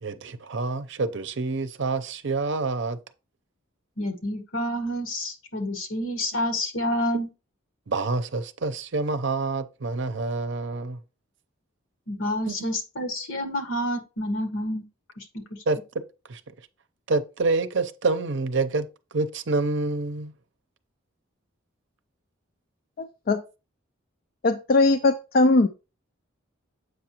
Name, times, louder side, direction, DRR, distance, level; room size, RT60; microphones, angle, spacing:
voice 1, 0.0-3.0 7.1-7.2 7.9-11.0 12.5-12.7 15.7-15.8 16.3-16.4 17.1-20.3, right 3 dB, 60° right, 0.6 m, -27 dB
voice 2, 4.0-7.3 12.1-14.9 15.2-15.6, equal, 80° left, 1.8 m, -29 dB
voice 3, 23.0-23.4 24.4-25.7, left 2 dB, 45° left, 0.4 m, -20 dB
8.0 x 5.8 x 2.9 m
head